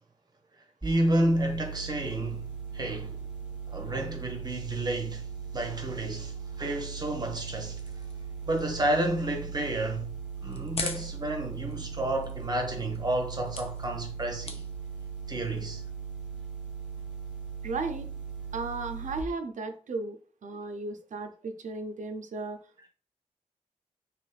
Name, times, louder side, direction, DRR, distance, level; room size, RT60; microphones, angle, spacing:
sound 1, 0.8-19.2, right 6 dB, 10° right, 1.0 m, -39 dB
voice 1, 0.8-3.3 3.7-5.2 5.5-8.1 8.5-10.1 10.4-14.6 15.3-15.8, right 1 dB, 35° right, 0.6 m, -30 dB
sound 2, 7.3-15.9, left 3 dB, 50° left, 0.5 m, -44 dB
voice 2, 17.6-18.1 18.5-22.6, right 3 dB, 85° right, 0.4 m, -35 dB
3.1 x 3.0 x 2.4 m
wide cardioid pair, 105°, 12 cm